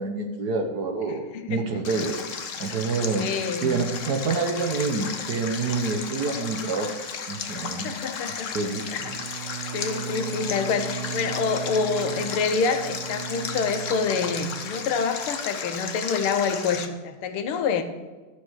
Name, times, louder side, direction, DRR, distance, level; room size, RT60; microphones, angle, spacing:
voice 1, 0.0-2.2 2.6-3.3 3.6-7.0 7.3-8.0 8.3-9.1, right 4 dB, 55° right, 1.4 m, -27 dB
Stream, 1.8-16.9, left 6 dB, 55° left, 0.9 m, -34 dB
voice 2, 3.2-3.8 7.5-8.5 8.9-9.1 9.7-17.8, left 5 dB, 80° left, 1.8 m, -27 dB
Bowed string instrument, 9.0-15.6, right 8 dB, 85° right, 1.5 m, -37 dB
12.0 x 6.6 x 6.4 m
omnidirectional pair, 2.4 m